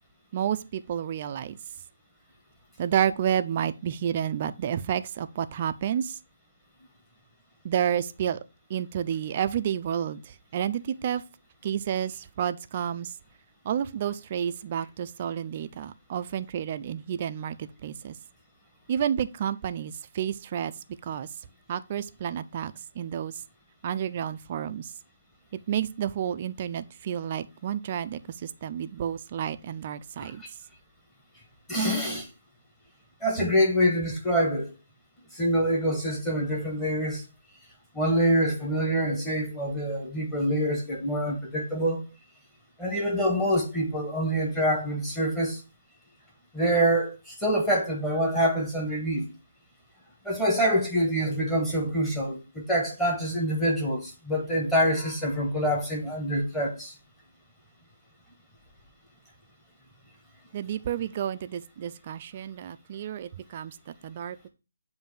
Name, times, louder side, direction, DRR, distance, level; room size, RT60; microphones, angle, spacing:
voice 1, 0.3-1.6 2.8-6.2 7.6-8.4 8.7-11.2 11.6-13.2 13.6-18.2 18.9-20.7 21.0-21.3 21.7-23.4 23.8-24.9 25.7-30.4 60.5-64.5, right 9 dB, 30° right, 0.4 m, -30 dB
voice 2, 31.7-32.3 33.2-34.7 35.3-37.2 37.9-42.0 42.8-45.6 46.5-49.3 50.2-56.9, equal, 10° left, 1.3 m, -26 dB
7.4 x 2.6 x 5.3 m
hypercardioid pair, 165°, 0 cm